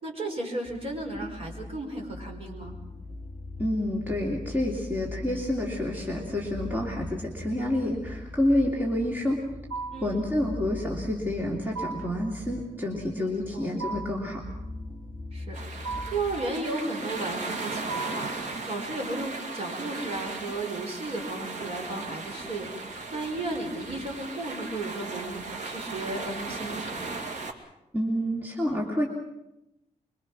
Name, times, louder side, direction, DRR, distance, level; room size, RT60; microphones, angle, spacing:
voice 1, 0.0-2.8 9.9-10.2 13.1-13.7 15.3-27.2, right 2 dB, 45° right, 1 dB, 5.2 m, -34 dB
sound 1, 0.6-16.4, left 2 dB, 5° left, 4.4 m, -41 dB
voice 2, 3.6-9.4 10.0-14.4 27.9-29.1, left 1 dB, 15° right, -2 dB, 3.0 m, -28 dB
sound 2, 9.7-10.2 11.8-12.2 13.8-14.3 15.8-16.3 17.9-18.4, right 4 dB, 85° right, 3.2 m, -36 dB
sound 3, 15.5-27.5, right 3 dB, 65° right, 2.5 m, -37 dB
25.0 x 23.5 x 6.2 m, 0.90 s
wide cardioid pair, 180°, 13 cm